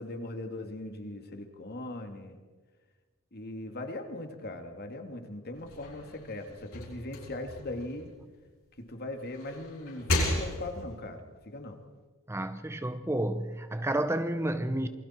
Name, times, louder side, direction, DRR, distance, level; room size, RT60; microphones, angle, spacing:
voice 1, 0.0-2.4 3.3-8.1 8.8-11.8, left 2 dB, 50° left, 2.3 m, -39 dB
sound 1, 5.5-8.7 9.2-11.0, left 1 dB, 75° left, 6.2 m, -34 dB
voice 2, 12.3-14.9, right 1 dB, 15° right, 0.7 m, -30 dB
28.0 x 21.5 x 4.5 m
head